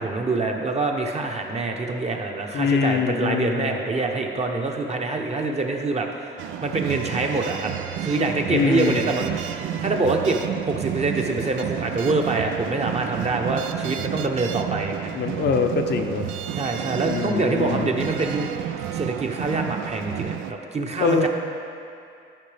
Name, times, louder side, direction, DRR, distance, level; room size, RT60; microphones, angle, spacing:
voice 1, 0.0-6.3 6.6-7.7 8.0-9.4 9.8-15.1 16.5-18.4 18.9-21.3, right 3 dB, 35° right, 2 dB, 0.9 m, -25 dB
voice 2, 2.5-3.7 8.5-9.1 15.1-16.3 17.0-18.0 21.0-21.3, left 5 dB, 60° left, 4 dB, 0.7 m, -23 dB
sound 1, 6.4-20.5, right 10 dB, 80° right, 0.4 m, -31 dB
12.0 x 5.4 x 3.4 m, 2.5 s
cardioid pair, 90°, 20 cm